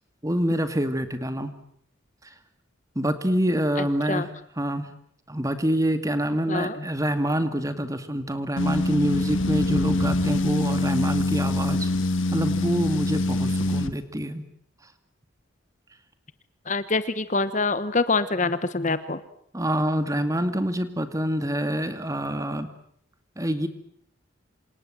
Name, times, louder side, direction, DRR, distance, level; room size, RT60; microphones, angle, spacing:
voice 1, 0.2-1.5 2.2-2.3 3.0-4.3 4.6-4.9 5.3-11.9 12.3-14.5 19.5-22.7 23.4-23.7, right 1 dB, 15° right, 10 dB, 2.3 m, -26 dB
voice 2, 3.8-4.3 6.5-6.8 16.7-19.2, left 3 dB, 35° left, 13 dB, 1.2 m, -25 dB
sound 1, 8.6-13.9, left 2 dB, 70° left, 1.8 m, -24 dB
27.5 x 27.5 x 7.7 m, 0.68 s
head